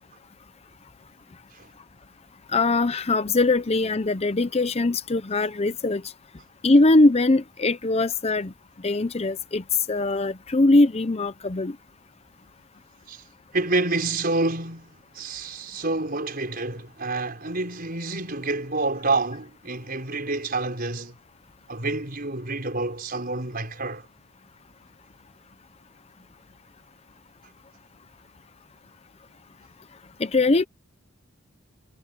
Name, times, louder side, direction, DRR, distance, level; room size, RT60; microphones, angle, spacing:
voice 1, 2.5-6.0 6.6-8.5 8.8-11.8 30.2-30.6, left 2 dB, 30° left, 0.6 m, -21 dB
voice 2, 13.5-21.2 21.7-24.1, right 3 dB, 45° right, 5.3 m, -28 dB
head